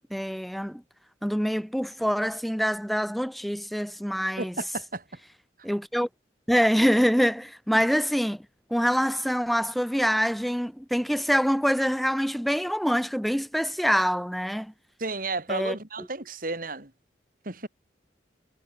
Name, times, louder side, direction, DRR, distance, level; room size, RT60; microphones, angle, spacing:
voice 1, 0.1-0.8 1.2-4.5 5.6-6.1 6.5-8.4 8.7-14.7 15.5-15.8, equal, ahead, 0.7 m, -25 dB
voice 2, 4.4-5.0 15.0-16.9 17.4-17.7, right 3 dB, 50° right, 3.0 m, -32 dB
head